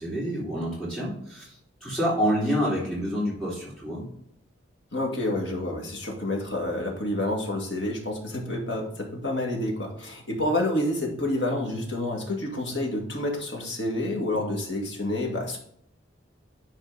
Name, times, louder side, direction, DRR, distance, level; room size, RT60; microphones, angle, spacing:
voice 1, 0.0-1.5 1.8-4.1, equal, 5° left, -7 dB, 3.9 m, -27 dB
voice 2, 4.9-15.6, left 1 dB, 65° left, 0 dB, 2.1 m, -29 dB
11.0 x 4.4 x 4.1 m, 0.67 s
head